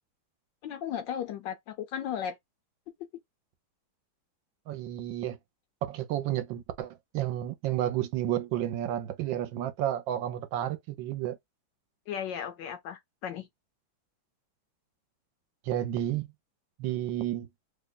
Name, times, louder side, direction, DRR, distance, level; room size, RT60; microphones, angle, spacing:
voice 1, 0.6-2.4 12.1-13.5, left 9 dB, 75° left, 1.1 m, -35 dB
voice 2, 4.7-5.4 5.9-11.4 15.7-16.3 16.8-17.5, right 12 dB, 75° right, 1.3 m, -31 dB
3.2 x 2.2 x 3.8 m
omnidirectional pair, 2.2 m